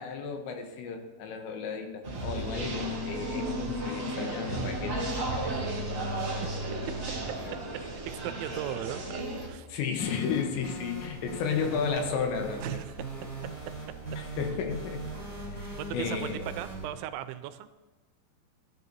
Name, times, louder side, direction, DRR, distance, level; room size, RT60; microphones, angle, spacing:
voice 1, 0.0-5.0 5.3-5.6 7.3-7.6 9.7-12.8 13.1-13.3 14.2-15.0 15.5-16.4, left 6 dB, 80° left, 4 dB, 3.3 m, -33 dB
sound 1, 2.0-9.5, right 1 dB, 30° right, 1.4 m, -33 dB
voice 2, 8.1-9.7 12.6-13.1 15.7-17.7, right 12 dB, 85° right, 11 dB, 2.9 m, -38 dB
sound 2, 10.0-16.9, right 3 dB, 15° left, 3.6 m, -40 dB
15.0 x 10.5 x 2.8 m, 1.2 s
omnidirectional pair, 5.3 m